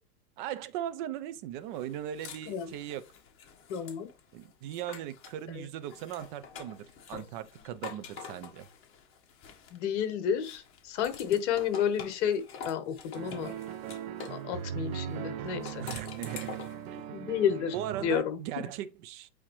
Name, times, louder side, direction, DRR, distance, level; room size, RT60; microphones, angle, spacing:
voice 1, 0.4-3.1 4.3-8.7 15.8-16.6 16.9-17.0 17.7-19.3, right 11 dB, 30° right, 0.6 m, -38 dB
sound 1, 1.7-5.4 5.8-10.0 10.4-14.4 15.5-16.9, left 6 dB, 25° left, 1.5 m, -46 dB
voice 2, 3.7-4.1 5.5-5.6 9.7-13.5 14.3-15.8 17.1-17.7 18.0-18.4, left 8 dB, 45° left, 1.4 m, -31 dB
sound 2, 13.1-18.2, right 9 dB, 55° right, 1.1 m, -39 dB
8.4 x 3.6 x 3.2 m
hypercardioid pair, 120°, 49 cm